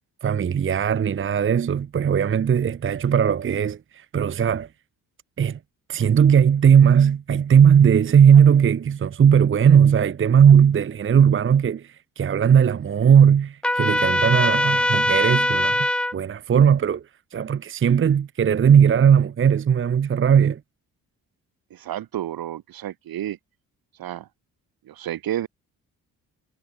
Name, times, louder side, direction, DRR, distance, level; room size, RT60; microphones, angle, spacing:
voice 1, 0.2-4.7 5.4-5.6 5.9-15.9 16.1-17.0 17.3-20.6, right 8 dB, 35° right, 0.7 m, -18 dB
Trumpet, 13.6-16.1, left 1 dB, 5° left, 0.4 m, -21 dB
voice 2, 21.7-23.4 24.0-24.3 24.8-25.5, right 12 dB, 85° right, 7.6 m, -31 dB
cardioid pair, 90°, 35 cm